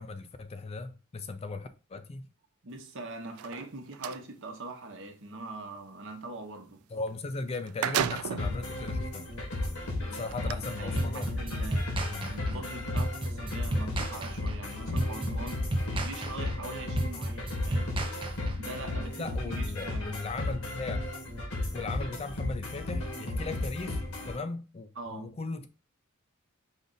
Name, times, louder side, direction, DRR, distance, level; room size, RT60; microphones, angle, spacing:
voice 1, 0.0-2.3 6.9-9.3 10.1-11.3 12.0-12.6 14.9-15.0 19.2-21.1 21.7-25.7, left 3 dB, 30° left, 0.4 m, -38 dB
voice 2, 2.6-6.8 10.0-11.9 12.3-15.7 15.9-18.0 18.6-20.2 24.9-25.3, right 2 dB, 60° right, 1.0 m, -43 dB
sound 1, 3.3-4.2 7.1-7.2 7.5-8.6 9.3-9.4 10.3-10.5, right 10 dB, 85° right, 0.3 m, -32 dB
sound 2, 8.4-24.4, left 2 dB, 90° left, 1.6 m, -34 dB
sound 3, 11.0-18.8, right 1 dB, 25° right, 0.6 m, -32 dB
5.3 x 2.5 x 3.9 m
head